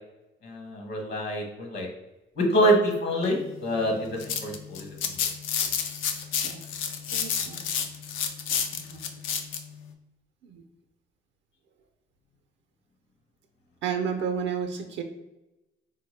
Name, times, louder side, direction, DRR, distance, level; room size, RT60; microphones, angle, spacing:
voice 1, 0.4-1.9 2.4-5.2, right 1 dB, 60° left, 1 dB, 1.0 m, -26 dB
sound 1, 4.0-9.6, left 7 dB, 85° left, 0.4 m, -30 dB
voice 2, 7.1-7.6 8.7-9.0 10.4-10.6 13.8-15.0, right 7 dB, 70° right, 4 dB, 0.5 m, -32 dB
3.6 x 2.1 x 3.2 m, 0.99 s
cardioid pair, 90°, 20 cm